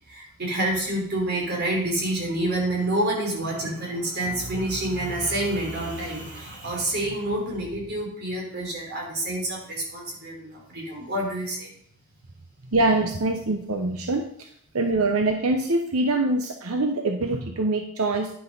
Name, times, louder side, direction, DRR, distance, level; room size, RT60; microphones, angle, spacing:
voice 1, 0.1-11.7, right 1 dB, 50° right, -1 dB, 3.7 m, -28 dB
voice 2, 12.7-14.5 14.7-18.3, right 2 dB, 90° right, 4 dB, 0.9 m, -24 dB
10.5 x 6.1 x 5.5 m, 0.67 s
head